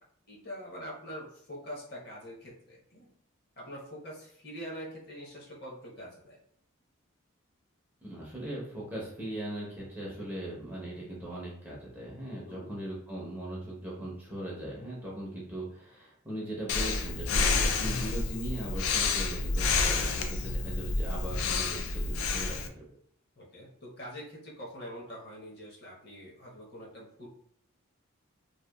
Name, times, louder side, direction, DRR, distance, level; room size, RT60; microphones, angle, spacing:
voice 1, 0.3-3.1 3.6-6.4 12.5-12.7 23.4-27.3, equal, 50° left, -3 dB, 0.8 m, -44 dB
voice 2, 8.0-22.9, right 1 dB, 10° right, -5 dB, 0.5 m, -39 dB
Breathing, 16.7-22.7, left 4 dB, 90° left, 0.3 m, -29 dB
2.8 x 2.1 x 2.2 m, 0.67 s
head